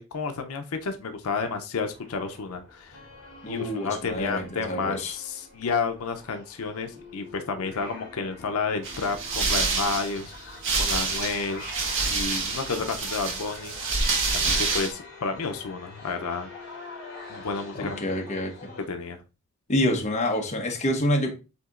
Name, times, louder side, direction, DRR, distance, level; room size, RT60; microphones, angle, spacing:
voice 1, 0.0-3.0 3.5-10.3 10.8-11.6 12.1-13.8 14.3-16.5 17.3-18.0 18.9-19.2, left 4 dB, 85° left, 0.6 m, -31 dB
sound 1, 1.8-18.8, left 3 dB, 55° left, 2.1 m, -45 dB
voice 2, 3.4-5.2 17.8-18.5 19.7-21.3, left 1 dB, 35° left, 1.0 m, -27 dB
sound 2, 8.8-14.9, right 4 dB, 65° right, 1.2 m, -27 dB
7.9 x 2.8 x 2.4 m
head